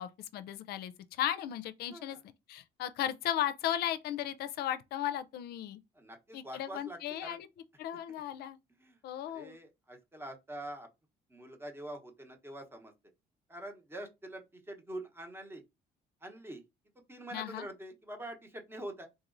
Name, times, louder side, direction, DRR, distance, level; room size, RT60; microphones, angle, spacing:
voice 1, 0.0-2.2 2.5-5.8 6.3-7.5 7.8-8.6 9.0-9.6 17.3-17.7, left 11 dB, 70° left, 0.4 m, -36 dB
voice 2, 1.9-2.2 5.9-7.4 8.8-10.9 11.3-12.9 13.5-15.6 16.2-16.6 16.9-19.1, right 1 dB, 15° right, 0.9 m, -45 dB
3.9 x 3.0 x 2.5 m
cardioid pair, 110°, 17 cm